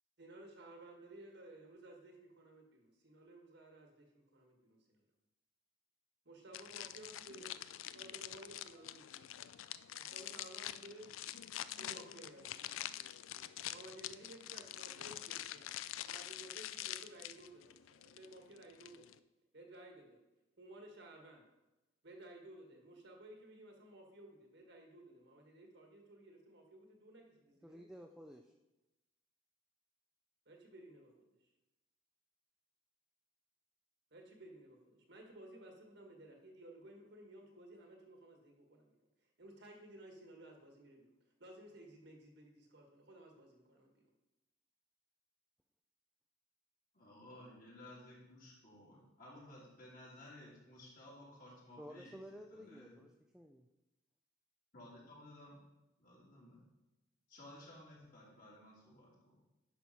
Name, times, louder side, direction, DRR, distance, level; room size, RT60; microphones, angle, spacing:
voice 1, 0.2-5.0 6.3-7.6 7.9-9.4 10.0-11.1 11.8-12.8 13.7-15.6 16.1-19.2 19.5-20.2 20.6-21.4 22.0-27.8 30.5-31.1 34.1-38.9 39.4-41.1 41.4-43.9, right 1 dB, 55° right, 1 dB, 1.6 m, -56 dB
sound 1, 6.5-19.2, left 12 dB, 85° left, 0.3 m, -46 dB
voice 2, 27.6-28.5 51.8-53.7, equal, 5° right, 3 dB, 0.4 m, -53 dB
voice 3, 46.9-52.2 52.5-53.0 54.7-55.6 56.0-56.6 57.3-59.3, left 1 dB, 45° left, -5 dB, 3.1 m, -56 dB
10.5 x 6.2 x 4.2 m, 1.0 s
head